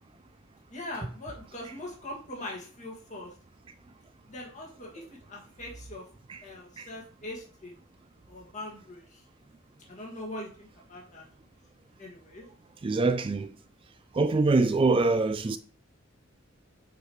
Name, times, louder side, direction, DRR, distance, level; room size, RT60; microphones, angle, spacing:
voice 1, 0.7-3.3 4.3-6.0 6.4-7.7 8.3-9.0 9.9-11.2 12.0-12.5, left 1 dB, 35° left, 2.0 m, -41 dB
voice 2, 12.8-13.5 14.2-15.6, right 3 dB, 25° right, 0.3 m, -24 dB
8.0 x 4.8 x 3.2 m
head